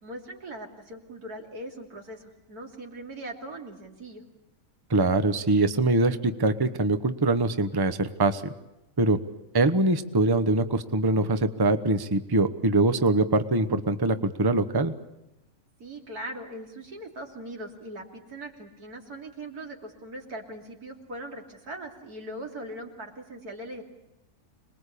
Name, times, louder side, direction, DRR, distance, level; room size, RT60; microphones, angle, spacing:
voice 1, 0.0-4.2 15.8-23.8, right 1 dB, 90° right, 2 dB, 3.5 m, -40 dB
voice 2, 4.9-8.4 9.0-9.2 9.5-14.9, right 2 dB, 20° right, 10 dB, 0.9 m, -23 dB
26.0 x 20.5 x 8.4 m, 0.93 s
omnidirectional pair, 1.6 m